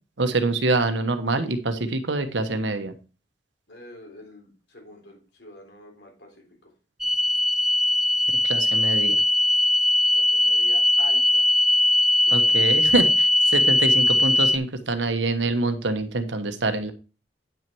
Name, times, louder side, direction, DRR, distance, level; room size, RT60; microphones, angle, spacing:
voice 1, 0.2-2.9 8.4-9.2 12.3-16.9, right 2 dB, 85° right, 9 dB, 1.1 m, -25 dB
voice 2, 3.7-6.4 10.1-11.5, left 1 dB, 70° left, 1 dB, 3.5 m, -45 dB
sound 1, 7.0-14.6, left 1 dB, ahead, 0.4 m, -20 dB
9.1 x 6.2 x 4.5 m, 0.34 s
head